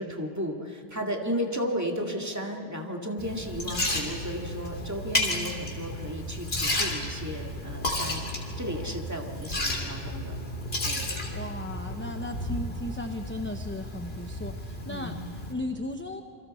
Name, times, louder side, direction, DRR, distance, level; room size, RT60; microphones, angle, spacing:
voice 1, 0.0-10.4 10.8-11.1 14.9-15.2, equal, 15° right, 1 dB, 2.1 m, -34 dB
Liquid, 3.2-15.5, left 1 dB, 70° left, 3.2 m, -32 dB
voice 2, 11.3-16.2, left 1 dB, 15° left, 5 dB, 0.7 m, -36 dB
28.0 x 25.5 x 4.4 m, 2.9 s
omnidirectional pair, 1.1 m